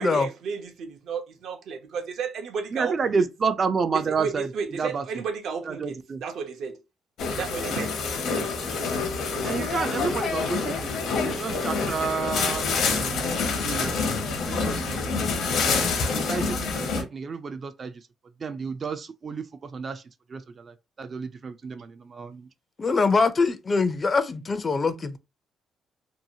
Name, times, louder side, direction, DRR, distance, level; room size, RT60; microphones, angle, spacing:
voice 1, 0.0-2.9 4.0-6.8 7.4-8.0, right 6 dB, 75° right, 0.6 m, -33 dB
voice 2, 2.7-5.0 5.6-6.2 9.4-14.0 14.5-15.3 16.1-18.0 18.4-20.0 20.3-22.5, right 5 dB, 45° right, 0.3 m, -30 dB
sound 1, 7.2-17.0, left 4 dB, 75° left, 0.8 m, -27 dB
voice 3, 22.8-25.2, left 4 dB, 35° left, 0.4 m, -23 dB
2.7 x 2.2 x 2.7 m
cardioid pair, 90°, 0 cm